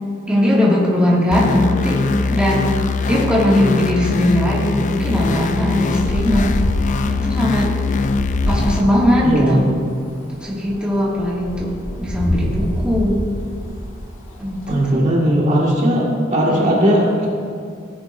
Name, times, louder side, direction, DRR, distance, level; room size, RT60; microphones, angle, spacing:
voice 1, 0.3-2.0 2.3-2.8 3.1-6.6 7.1-7.7 8.5-9.6 10.4-13.2 14.4-15.1 16.5-16.7, left 1 dB, 5° right, -7 dB, 2.0 m, -19 dB
sound 1, 1.3-8.8, left 4 dB, 40° left, 0.4 m, -21 dB
Wind, 5.0-14.9, equal, 75° left, 1.7 m, -27 dB
voice 2, 9.2-9.6 14.7-17.3, equal, 40° right, -4 dB, 1.8 m, -17 dB
17.0 x 9.5 x 2.6 m, 2.3 s
head